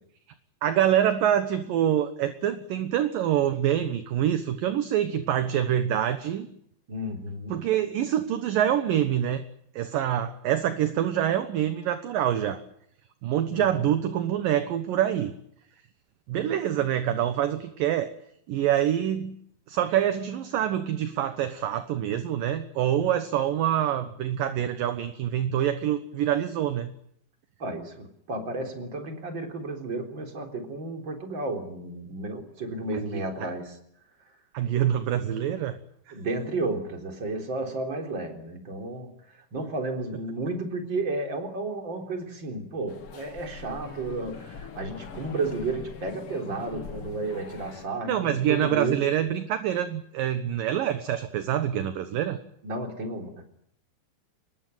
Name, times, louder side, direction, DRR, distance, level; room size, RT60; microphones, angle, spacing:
voice 1, 0.6-6.5 7.5-9.4 9.7-12.6 13.2-15.3 16.3-18.1 18.5-19.4 19.7-26.9 32.9-33.5 34.5-35.8 48.0-52.4, right 10 dB, 65° right, 10 dB, 2.5 m, -26 dB
voice 2, 6.9-7.5 13.5-13.8 27.6-33.8 36.1-39.1 39.5-49.0 52.6-53.4, right 2 dB, 25° right, 5 dB, 4.0 m, -32 dB
sound 1, 42.9-47.9, left 6 dB, 50° left, 1.7 m, -43 dB
24.5 x 21.0 x 9.2 m, 0.71 s
omnidirectional pair, 5.0 m